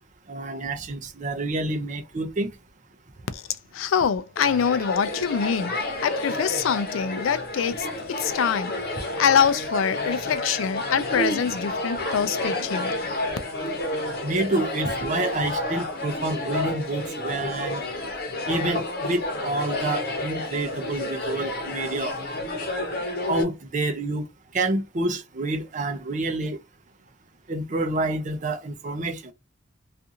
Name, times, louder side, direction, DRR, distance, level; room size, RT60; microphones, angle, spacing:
voice 1, 0.3-2.5 14.2-17.8 18.5-22.2 23.3-24.2 24.5-26.6 27.5-29.3, right 2 dB, 40° right, 0.6 m, -28 dB
voice 2, 3.7-8.7 9.2-13.2, left 7 dB, 85° left, 0.4 m, -25 dB
sound 1, 4.4-23.4, left 2 dB, 50° left, 0.8 m, -30 dB
2.5 x 2.4 x 2.7 m
head